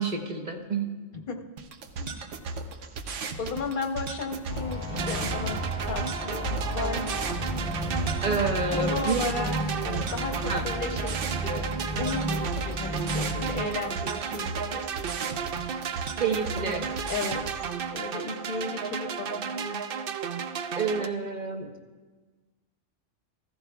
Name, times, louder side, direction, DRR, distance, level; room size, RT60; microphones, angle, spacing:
voice 1, 0.0-1.0 8.2-9.2 10.5-10.7 16.2-16.9 20.7-21.7, right 4 dB, 40° right, 3 dB, 1.1 m, -29 dB
sound 1, 1.6-17.6, right 4 dB, 80° right, 1.1 m, -37 dB
voice 2, 3.4-7.3 8.7-9.5 9.8-14.8 17.1-19.8, left 4 dB, 45° left, 4 dB, 0.9 m, -35 dB
sound 2, 4.5-13.7, right 1 dB, 5° right, 1.1 m, -33 dB
sound 3, 4.9-21.1, right 7 dB, 60° right, 0.7 m, -34 dB
15.0 x 14.5 x 2.3 m, 1.3 s
omnidirectional pair, 1.2 m